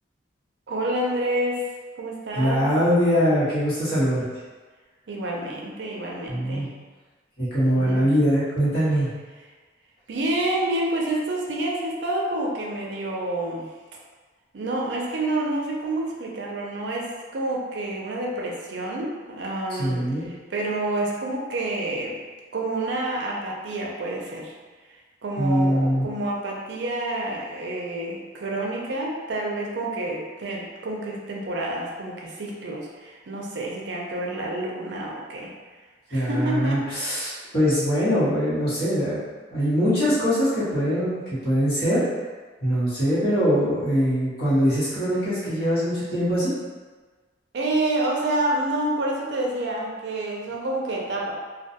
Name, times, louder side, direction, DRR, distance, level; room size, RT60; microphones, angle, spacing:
voice 1, 0.7-1.6 2.0-2.7 5.1-6.7 7.8-8.1 10.1-13.7 14.5-22.2 22.5-24.5 25.2-35.5 36.1-36.8 47.5-51.3, right 1 dB, 65° right, -2 dB, 0.4 m, -28 dB
voice 2, 2.3-4.2 6.3-6.7 7.4-9.1 19.8-20.2 25.4-26.0 36.1-39.2 39.5-42.0 42.6-46.5, equal, 55° left, -11 dB, 1.1 m, -22 dB
2.3 x 2.2 x 2.7 m, 1.4 s
head